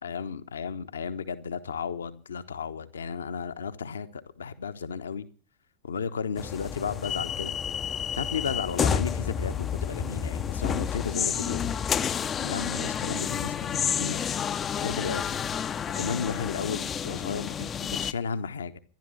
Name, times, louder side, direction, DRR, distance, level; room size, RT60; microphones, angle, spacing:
voice 1, 0.0-5.3 5.8-7.6 8.1-11.8 12.4-14.2 14.8-15.7 16.0-18.8, left 6 dB, 70° left, 1.1 m, -34 dB
sound 1, 6.4-18.1, left 8 dB, 25° left, 0.6 m, -30 dB
13.5 x 11.5 x 8.1 m
figure-of-eight pair, 90°, 0 cm